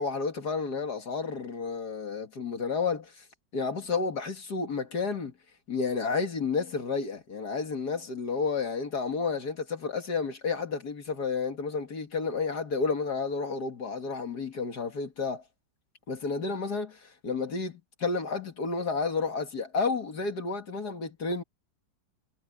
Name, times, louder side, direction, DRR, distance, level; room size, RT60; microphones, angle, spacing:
voice 1, 0.0-3.2 3.5-5.3 5.7-15.4 16.1-21.4, left 4 dB, 55° left, 2.5 m, -31 dB
omnidirectional pair, 2.1 m